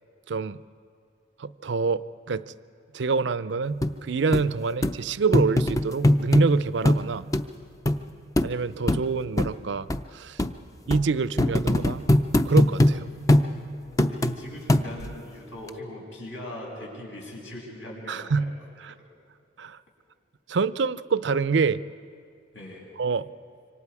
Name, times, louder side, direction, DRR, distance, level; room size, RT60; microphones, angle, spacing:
voice 1, 0.3-0.6 1.4-2.4 2.9-7.2 8.4-10.4 10.9-12.1 12.5-13.1 18.1-18.5 18.8-18.9 19.6-19.8 20.5-21.8 23.0-23.3, right 4 dB, 65° right, 16 dB, 0.5 m, -26 dB
sound 1, 3.8-3.9 4.3-4.4 4.8-5.0 5.3-6.5 6.9-7.0 7.3-7.4 7.9-8.0 8.4-8.5 8.9-9.0 9.4-9.5 9.9-10.0 10.4-10.5 10.9-11.0 11.4-13.0 13.3-13.5 14.0-14.4 14.7-15.1 15.7-15.8, left 1 dB, 15° left, 0.5 m, -21 dB
voice 2, 14.0-18.4 22.5-22.9, left 1 dB, 75° left, -2 dB, 6.5 m, -40 dB
26.5 x 24.5 x 4.8 m, 2.3 s
head